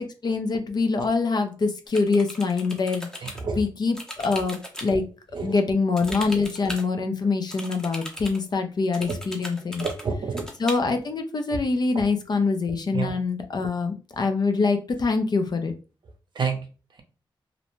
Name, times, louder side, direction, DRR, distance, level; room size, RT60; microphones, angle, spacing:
voice 1, 0.0-5.0 5.4-9.9 10.6-15.7, left 4 dB, 50° left, 6 dB, 0.5 m, -25 dB
sound 1, 1.9-3.4 3.9-4.9 6.0-6.9 7.5-8.4 8.9-10.0 10.4-10.7, equal, 5° left, 0.7 m, -38 dB
voice 2, 3.2-3.6 5.3-5.6 9.1-9.2 9.8-10.5 11.9-12.0 12.9-13.1 16.4-16.6, right 5 dB, 60° right, 5 dB, 0.6 m, -28 dB
2.6 x 2.1 x 3.0 m, 0.34 s
wide cardioid pair, 85°, 9 cm